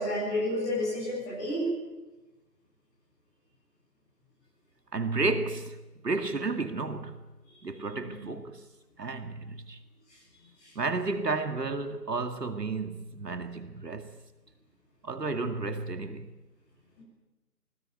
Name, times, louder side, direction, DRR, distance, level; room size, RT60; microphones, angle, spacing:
voice 1, 0.0-1.7 7.7-8.1 10.6-10.7, left 1 dB, 10° left, 7.2 m, -31 dB
voice 2, 4.9-5.8 6.0-7.2 7.6-8.7 9.0-9.8 10.8-14.2 15.0-16.3, right 3 dB, 75° right, 2.3 m, -32 dB
22.5 x 20.0 x 9.3 m
figure-of-eight pair, 180°, 49 cm